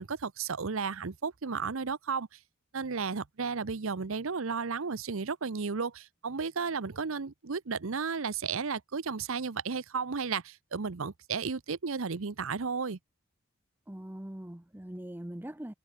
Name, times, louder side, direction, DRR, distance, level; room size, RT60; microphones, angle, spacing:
voice 1, 0.0-2.3 2.7-13.0, right 5 dB, 70° right, 0.8 m, -33 dB
voice 2, 13.9-15.7, right 1 dB, 10° right, 0.6 m, -42 dB
head